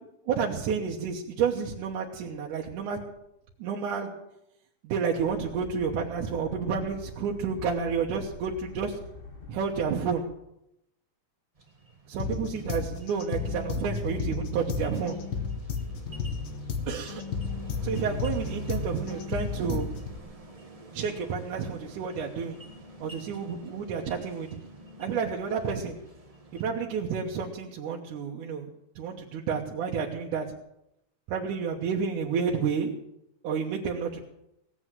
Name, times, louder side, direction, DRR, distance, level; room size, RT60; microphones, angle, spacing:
voice 1, 0.3-3.0 3.6-4.2 4.8-9.0 9.5-10.2 12.1-15.2 16.9-17.2 17.8-19.9 20.9-22.6 23.0-24.5 25.0-26.0 26.5-28.7 29.0-30.5 31.3-32.9 33.4-34.2, right 6 dB, 75° right, -2 dB, 2.5 m, -30 dB
sound 1, 5.2-10.2, left 3 dB, 80° left, 0.5 m, -45 dB
sound 2, 11.5-26.7, right 2 dB, 35° right, 0.6 m, -49 dB
sound 3, 12.2-20.2, left 5 dB, 55° left, 1.6 m, -33 dB
17.5 x 8.3 x 7.5 m, 0.83 s
omnidirectional pair, 3.7 m